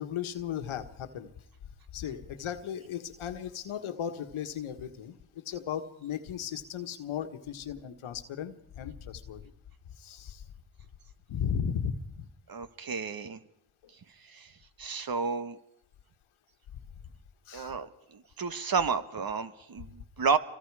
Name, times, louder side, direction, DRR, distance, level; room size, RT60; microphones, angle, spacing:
voice 1, 0.0-1.3 1.9-9.5 9.9-10.4 11.3-12.3 13.8-13.9 16.7-16.8 17.5-17.8, left 8 dB, 75° left, 8 dB, 1.6 m, -36 dB
voice 2, 12.5-13.4 14.2-14.5 14.8-15.6 17.5-20.4, right 5 dB, 45° right, 11 dB, 1.5 m, -31 dB
28.5 x 23.5 x 4.9 m, 0.81 s
cardioid pair, 65°, 49 cm